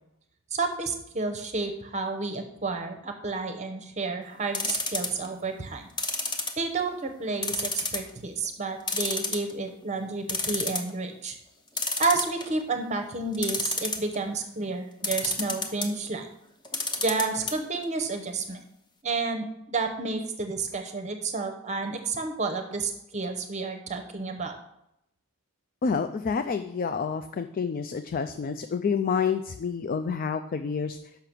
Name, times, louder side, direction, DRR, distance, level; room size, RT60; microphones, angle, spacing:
voice 1, 0.5-5.9 6.6-11.4 12.0-16.3 17.0-18.6 19.0-24.6, right 3 dB, 35° right, 5 dB, 0.8 m, -30 dB
sound 1, 4.5-5.3 6.0-6.9 7.4-8.1 8.4-8.5 8.9-9.7 10.0-10.1 10.3-10.9 11.8-12.6 13.3-14.2 15.0-15.9 16.6-17.5 17.8-17.9 18.2-18.3, left 3 dB, 20° left, 0.8 m, -29 dB
voice 2, 25.8-31.0, left 6 dB, 40° left, 9 dB, 0.3 m, -28 dB
6.7 x 5.8 x 6.0 m, 0.81 s
head